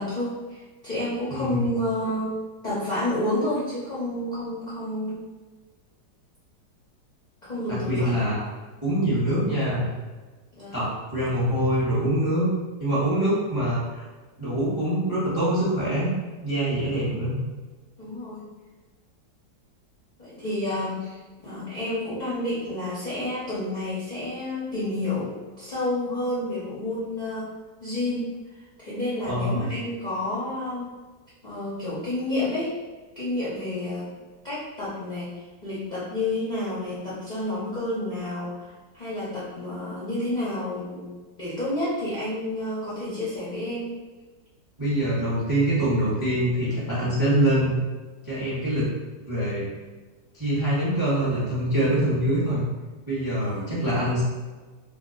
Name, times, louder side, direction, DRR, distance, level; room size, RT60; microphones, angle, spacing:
voice 1, 0.0-2.4 2.6-5.2 7.4-8.2 10.5-10.8 16.9-17.2 18.0-18.4 20.2-27.5 27.8-31.0 31.4-32.7 33.2-34.1 34.4-43.9 53.4-53.7, left 1 dB, 45° left, -10 dB, 0.5 m, -30 dB
voice 2, 1.3-1.7 7.7-8.4 8.8-9.9 10.7-12.5 12.8-14.1 14.4-16.1 16.4-17.4 29.2-29.7 44.8-47.7 48.2-48.9 49.3-49.7 50.3-52.6 53.1-54.2, right 1 dB, 20° right, -8 dB, 0.6 m, -24 dB
2.8 x 2.3 x 3.7 m, 1.3 s
omnidirectional pair, 2.0 m